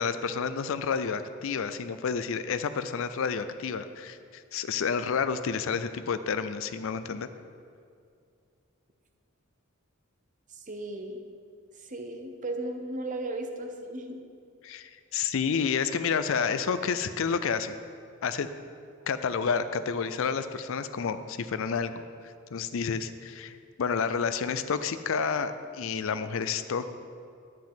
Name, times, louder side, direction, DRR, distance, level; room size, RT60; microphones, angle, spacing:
voice 1, 0.0-7.3 14.6-17.7 18.2-18.5 19.1-21.9 22.2-26.9, left 6 dB, 65° left, 11 dB, 0.4 m, -30 dB
voice 2, 10.5-11.2 11.8-14.2, right 2 dB, 35° right, 5 dB, 0.8 m, -36 dB
10.0 x 9.5 x 3.6 m, 2.3 s
head